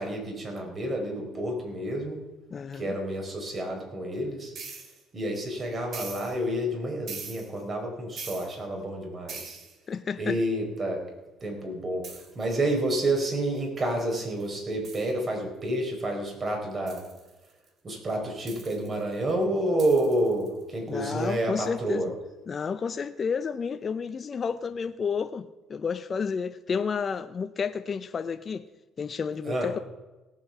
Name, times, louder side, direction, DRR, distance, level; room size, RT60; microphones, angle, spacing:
voice 1, 0.0-2.2 2.7-4.5 5.1-9.6 10.2-11.0 11.4-17.1 17.8-22.1 29.4-29.7, right 1 dB, 35° right, 4.7 m, -29 dB
voice 2, 2.5-3.0 9.9-10.4 20.9-22.1 22.5-28.7 29.0-29.8, left 6 dB, 35° left, 0.6 m, -31 dB
sound 1, 4.6-5.0 5.9-6.4 7.1-7.6 8.2-8.6 9.3-9.8 12.0-12.3 13.6-13.7 14.4-14.5 14.8-15.1 16.9-17.7 18.5-19.3 19.8-20.6, right 5 dB, 55° right, 2.6 m, -42 dB
17.5 x 8.1 x 5.9 m
cardioid pair, 95°, 0 cm